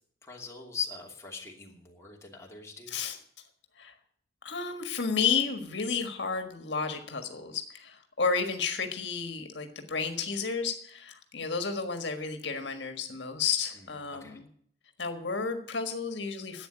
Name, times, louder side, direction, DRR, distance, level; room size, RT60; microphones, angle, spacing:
voice 1, 0.2-3.0 13.7-14.4, left 6 dB, 15° left, -1 dB, 2.8 m, -41 dB
voice 2, 4.4-14.5 15.0-16.7, left 5 dB, 75° left, 6 dB, 1.6 m, -32 dB
11.5 x 8.5 x 9.1 m, 0.63 s
head